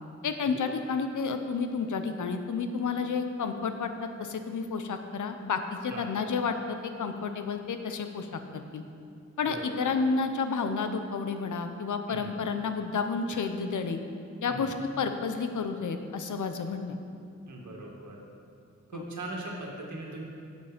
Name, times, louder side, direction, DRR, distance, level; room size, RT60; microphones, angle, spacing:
voice 1, 0.2-8.8 9.4-14.0 14.4-17.0 18.9-19.0, left 5 dB, 80° left, 7 dB, 0.8 m, -31 dB
voice 2, 9.4-9.9 12.1-12.3 14.5-14.7 17.5-18.2 18.9-20.2, right 2 dB, 75° right, -1 dB, 2.0 m, -40 dB
11.5 x 8.2 x 5.1 m, 2.5 s
wide cardioid pair, 165°, 30 cm